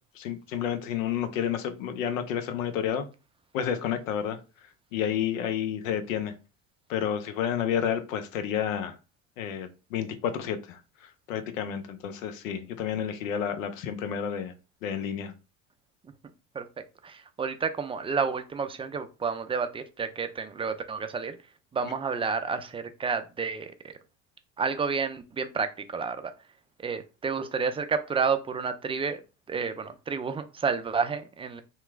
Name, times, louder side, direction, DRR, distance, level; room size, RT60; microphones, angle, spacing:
voice 1, 0.2-3.0 3.5-4.4 4.9-6.3 6.9-9.0 9.4-14.5 14.8-15.3, left 9 dB, 90° left, 10 dB, 0.7 m, -30 dB
voice 2, 17.0-21.4 21.7-23.9 24.6-26.3 26.8-29.2 29.5-31.6, right 5 dB, 15° right, 9 dB, 0.4 m, -30 dB
2.9 x 2.3 x 3.4 m, 0.31 s
hypercardioid pair, 85°, 38 cm